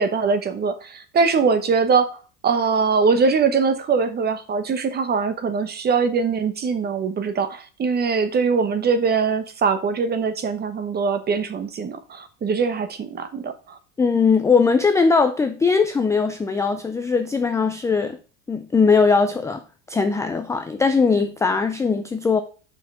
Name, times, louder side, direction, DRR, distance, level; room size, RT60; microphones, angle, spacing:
voice 1, 0.0-2.1 2.4-13.5, right 5 dB, 25° right, 10 dB, 1.0 m, -22 dB
voice 2, 14.0-18.2 18.5-19.6 19.9-22.4, left 5 dB, 10° left, 8 dB, 0.3 m, -20 dB
5.8 x 5.1 x 5.5 m, 0.37 s
supercardioid pair, 125°, 37 cm